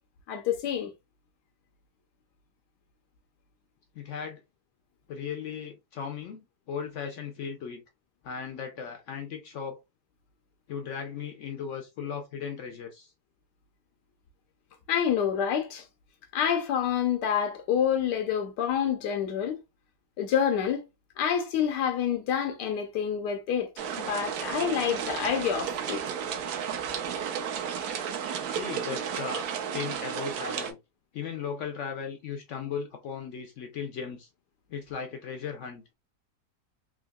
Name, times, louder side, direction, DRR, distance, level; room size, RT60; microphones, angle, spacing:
voice 1, 0.3-0.9 14.9-15.8 16.3-19.6 20.2-20.8 21.2-23.7 24.0-26.0, left 8 dB, 90° left, 1.2 m, -27 dB
voice 2, 4.0-4.4 5.1-7.8 8.2-9.8 10.7-13.1 28.4-29.5 29.7-30.8 31.1-34.3 34.7-35.8, left 7 dB, 70° left, 0.7 m, -37 dB
sound 1, 23.8-30.7, right 8 dB, 70° right, 1.1 m, -33 dB
3.7 x 2.8 x 2.2 m
omnidirectional pair, 1.8 m